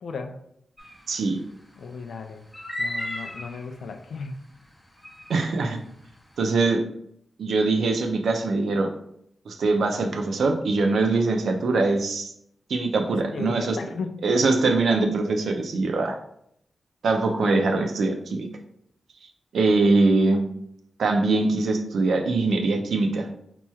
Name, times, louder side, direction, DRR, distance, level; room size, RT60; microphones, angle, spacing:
voice 1, 0.0-0.4 1.8-2.5 2.8-4.4 13.1-14.2, left 4 dB, 80° left, 7 dB, 0.4 m, -35 dB
sound 1, 0.8-1.0 2.5-3.6 5.0-5.4, left 1 dB, 15° left, 0.6 m, -33 dB
voice 2, 1.1-1.4 5.3-5.8 6.4-6.8 7.4-8.9 9.5-12.3 12.7-13.8 14.2-16.2 17.0-18.5 19.5-20.4 21.0-23.3, right 3 dB, 85° right, 4 dB, 0.5 m, -22 dB
4.3 x 3.0 x 2.3 m, 0.72 s
wide cardioid pair, 90°, 0 cm